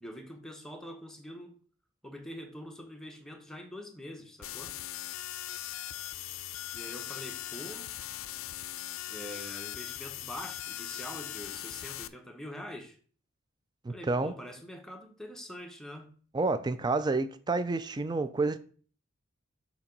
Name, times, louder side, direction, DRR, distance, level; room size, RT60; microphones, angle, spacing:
voice 1, 0.0-1.6 2.0-4.7 6.7-7.9 9.1-13.0 13.9-16.1, equal, ahead, 0.8 m, -44 dB
sound 1, 4.4-12.1, left 13 dB, 70° left, 0.4 m, -40 dB
voice 2, 13.8-14.3 16.3-18.6, right 3 dB, 20° right, 0.3 m, -29 dB
7.1 x 2.9 x 5.2 m
head